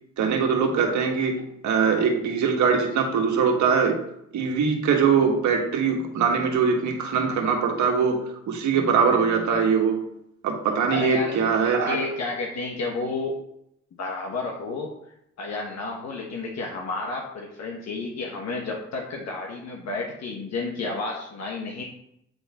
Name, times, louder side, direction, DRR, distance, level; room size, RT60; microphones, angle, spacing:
voice 1, 0.2-4.0 4.3-10.0 10.4-12.0, right 6 dB, 70° right, 2 dB, 1.6 m, -22 dB
voice 2, 10.9-13.4 14.0-14.9 15.4-21.8, left 3 dB, 60° left, -1 dB, 1.3 m, -31 dB
8.7 x 4.0 x 4.2 m, 0.76 s
cardioid pair, 90°, 30 cm